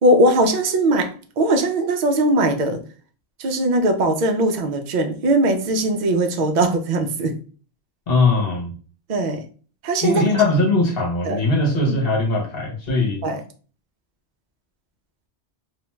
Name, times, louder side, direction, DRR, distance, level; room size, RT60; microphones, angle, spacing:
voice 1, 0.0-2.8 3.4-7.3 9.1-9.4 9.8-10.2 11.2-11.4 11.9-12.0 13.2-13.4, right 1 dB, 60° right, 0.5 m, -20 dB
voice 2, 8.1-8.7 10.0-13.2, left 2 dB, 55° left, 1.0 m, -20 dB
2.5 x 2.2 x 3.0 m
omnidirectional pair, 1.2 m